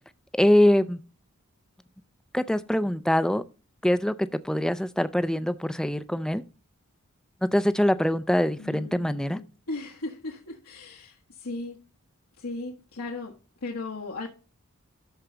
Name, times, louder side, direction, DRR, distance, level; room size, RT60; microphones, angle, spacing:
voice 1, 0.4-1.0 2.3-3.4 3.8-6.4 7.5-9.4, left 1 dB, 5° left, 0.4 m, -23 dB
voice 2, 8.6-11.8 12.4-13.3 13.6-14.3, left 2 dB, 85° left, 1.5 m, -37 dB
13.0 x 4.6 x 3.8 m
head